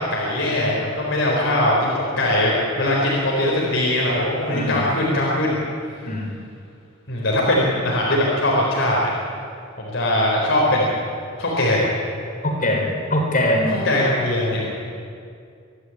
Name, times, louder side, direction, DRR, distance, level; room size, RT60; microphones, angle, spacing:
voice 1, 0.0-5.6 7.1-9.1 9.8-11.0 11.4-11.9 13.6-14.7, left 1 dB, 65° left, -4 dB, 4.1 m, -21 dB
voice 2, 4.5-4.8 6.1-6.3 12.4-13.8, left 1 dB, 40° left, 1 dB, 4.0 m, -22 dB
24.5 x 11.5 x 9.7 m, 2.3 s
head